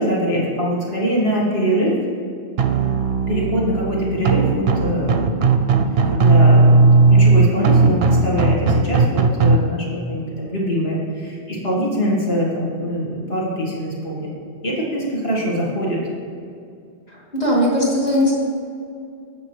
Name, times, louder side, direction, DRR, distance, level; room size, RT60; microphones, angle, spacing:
voice 1, 0.0-1.9 3.3-5.7 6.1-14.3 14.6-16.0, equal, 50° left, -5 dB, 2.2 m, -23 dB
sound 1, 2.6-9.6, right 3 dB, 60° right, 0.8 m, -15 dB
voice 2, 17.1-18.3, left 1 dB, 30° left, -6 dB, 2.3 m, -19 dB
15.5 x 5.3 x 3.3 m, 2.4 s
omnidirectional pair, 1.3 m